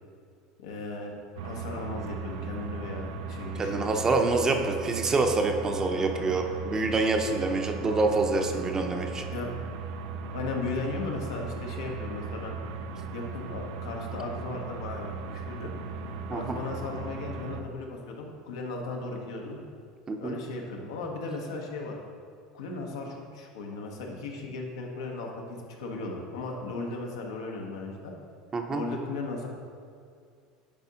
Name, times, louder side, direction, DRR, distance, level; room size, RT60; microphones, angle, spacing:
voice 1, 0.6-1.2 1.4-4.0 9.3-9.5 10.3-12.6 13.1-15.7 16.3-19.6 20.2-22.0 22.5-28.1 28.7-29.5, left 3 dB, 90° left, 0 dB, 0.9 m, -36 dB
sound 1, 1.4-17.6, right 4 dB, 80° right, 0.4 m, -37 dB
voice 2, 3.6-9.2 16.3-16.6 20.1-20.4 28.5-28.8, right 3 dB, 25° right, 4 dB, 0.6 m, -26 dB
9.9 x 3.6 x 2.8 m, 2.2 s
supercardioid pair, 100°, 2 cm